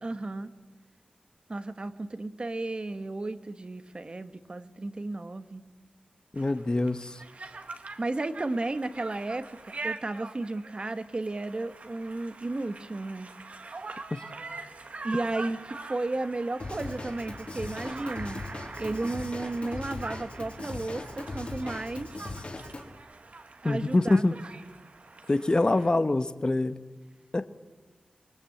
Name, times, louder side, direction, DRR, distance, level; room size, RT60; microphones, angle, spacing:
voice 1, 0.0-0.5 1.5-5.6 8.0-13.3 15.0-18.5 18.8-22.2 23.6-24.2, right 2 dB, 35° right, 10 dB, 1.4 m, -33 dB
voice 2, 6.3-7.2 14.1-14.2 23.6-24.4 25.3-26.8 27.3-27.5, left 2 dB, 30° left, 11 dB, 1.1 m, -25 dB
Conversation, 6.4-25.9, right 3 dB, 55° right, 1.7 m, -44 dB
Drum kit / Drum, 16.6-22.8, left 2 dB, 50° left, 3.6 m, -39 dB
25.0 x 21.0 x 8.6 m, 1.2 s
wide cardioid pair, 100°, 3 cm